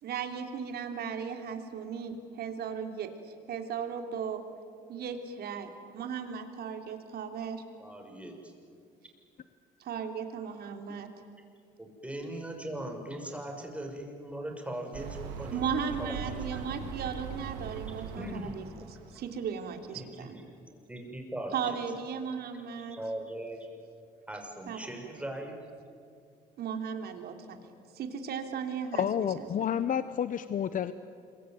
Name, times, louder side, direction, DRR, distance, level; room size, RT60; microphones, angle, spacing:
voice 1, 0.0-4.4 4.9-7.6 9.8-11.1 15.5-18.6 19.1-20.3 21.5-23.0 24.7-24.8 26.6-27.6 27.9-29.3, right 7 dB, 65° right, 6 dB, 3.2 m, -36 dB
voice 2, 7.8-8.5 11.8-15.6 16.0-16.7 17.0-17.1 18.2-18.5 19.9-20.4 20.9-21.8 22.8-23.7 24.3-25.7, right 1 dB, 5° right, 2 dB, 6.2 m, -40 dB
sound 1, 14.9-19.2, right 7 dB, 85° right, 2.9 m, -40 dB
voice 3, 29.0-30.9, left 9 dB, 50° left, 13 dB, 0.9 m, -30 dB
26.5 x 23.5 x 9.4 m, 2.4 s
supercardioid pair, 75°, 17 cm